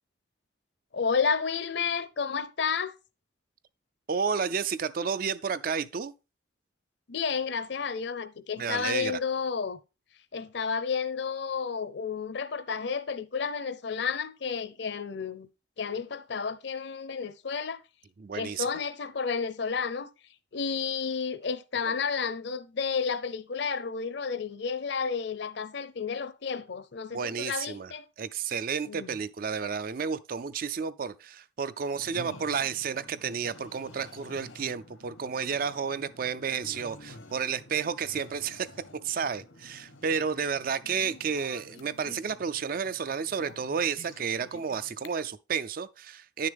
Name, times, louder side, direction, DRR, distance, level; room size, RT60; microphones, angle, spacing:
voice 1, 0.9-2.9 7.1-9.8 10.3-15.5 15.8-17.8 18.3-20.1 20.5-28.1 28.9-29.1, left 5 dB, 60° left, 0.6 m, -31 dB
voice 2, 4.1-6.1 8.6-9.2 18.2-18.7 27.1-27.9 28.2-38.7 38.9-46.5, right 6 dB, 45° right, 0.4 m, -31 dB
sound 1, 31.9-45.1, left 2 dB, 80° left, 0.9 m, -50 dB
9.9 x 6.5 x 3.4 m
head